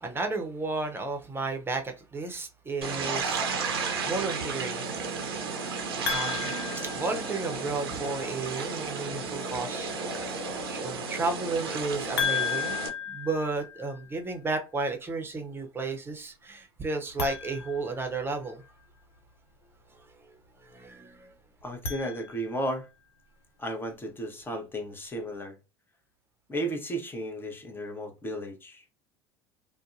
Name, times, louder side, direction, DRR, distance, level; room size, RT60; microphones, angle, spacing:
voice 1, 0.0-3.5 3.8-4.9 6.1-9.9 10.3-12.8 13.1-18.6 20.6-21.3, right 3 dB, 15° right, 0.8 m, -33 dB
sound 1, 2.8-12.9, right 4 dB, 75° right, 0.6 m, -33 dB
sound 2, 6.0-7.7 12.2-14.2 17.1-18.7 21.6-22.8, left 6 dB, 85° left, 0.6 m, -34 dB
voice 2, 21.6-22.9 23.6-25.6 26.5-28.8, right 1 dB, 15° left, 0.9 m, -34 dB
2.6 x 2.2 x 2.5 m
figure-of-eight pair, 70°, 13 cm